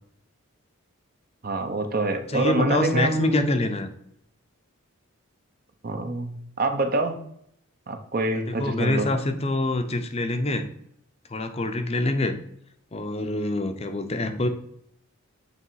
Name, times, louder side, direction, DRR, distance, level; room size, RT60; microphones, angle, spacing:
voice 1, 1.4-3.5 5.8-7.2 7.9-9.1, right 2 dB, 40° right, 6 dB, 0.7 m, -26 dB
voice 2, 2.3-3.9 8.3-10.7 11.3-12.3 12.9-14.5, left 2 dB, 30° left, 7 dB, 0.6 m, -25 dB
8.3 x 3.3 x 4.7 m, 0.71 s
head